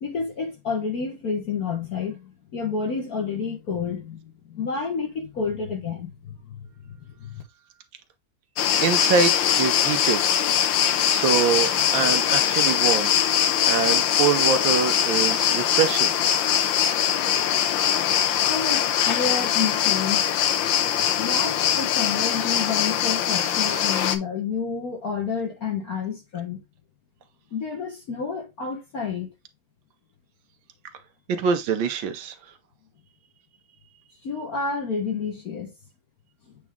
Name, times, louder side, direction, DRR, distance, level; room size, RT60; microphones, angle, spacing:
voice 1, 0.0-6.4 7.2-7.4 18.5-20.3 21.2-26.6 27.5-29.3 34.2-35.7, left 5 dB, 55° left, 1.6 m, -29 dB
sound 1, 8.6-24.2, left 9 dB, 80° left, 1.4 m, -22 dB
voice 2, 8.8-10.2 11.1-13.1 13.6-16.2 23.7-23.8 31.3-32.3, right 6 dB, 80° right, 1.5 m, -24 dB
8.2 x 3.1 x 3.6 m
omnidirectional pair, 2.1 m